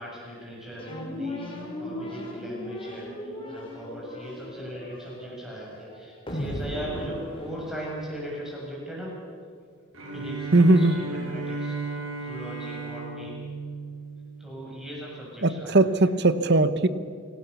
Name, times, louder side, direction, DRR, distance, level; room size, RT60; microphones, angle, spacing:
voice 1, 0.0-1.5 1.8-9.1 10.1-13.4 14.4-16.1, equal, ahead, -5 dB, 7.4 m, -39 dB
sound 1, 0.8-8.3, left 1 dB, 25° left, 3.9 m, -37 dB
Bowed string instrument, 9.9-14.9, right 3 dB, 80° right, 6.3 m, -35 dB
voice 2, 10.5-11.0 15.4-16.9, right 2 dB, 50° right, 13 dB, 1.0 m, -19 dB
29.0 x 18.0 x 7.0 m, 2.3 s
head